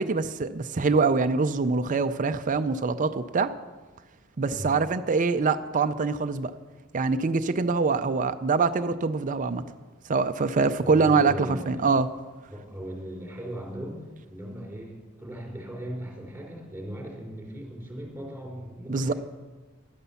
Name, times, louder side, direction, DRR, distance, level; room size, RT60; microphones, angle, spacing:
voice 1, 0.0-3.5 4.4-6.5 6.9-9.6 10.1-12.1 18.9-19.1, right 4 dB, 40° right, 9 dB, 0.5 m, -24 dB
voice 2, 10.8-11.9 12.5-14.0 14.3-19.1, right 1 dB, 10° right, -2 dB, 3.9 m, -38 dB
11.5 x 9.8 x 7.0 m, 1.3 s
head